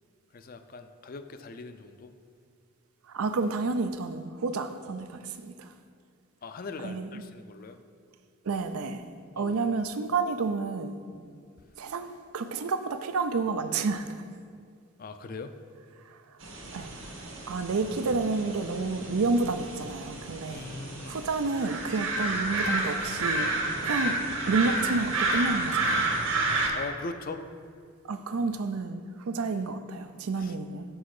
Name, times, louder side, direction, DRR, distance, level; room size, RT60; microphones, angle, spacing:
voice 1, 0.3-2.1 6.4-7.8 9.4-9.6 15.0-15.6 20.5-21.2 26.7-27.4 30.4-30.6, left 3 dB, 40° left, 9 dB, 0.4 m, -40 dB
voice 2, 3.1-5.7 6.8-7.2 8.4-9.0 9.4-11.0 11.8-14.2 16.1-16.2 16.7-16.9 17.5-20.7 21.1-23.5 23.8-24.2 24.5-26.1 28.0-30.8, right 3 dB, 90° right, 10 dB, 0.5 m, -30 dB
sound 1, 16.4-26.7, right 2 dB, 60° right, 1.1 m, -30 dB
6.7 x 6.3 x 4.8 m, 2.2 s
head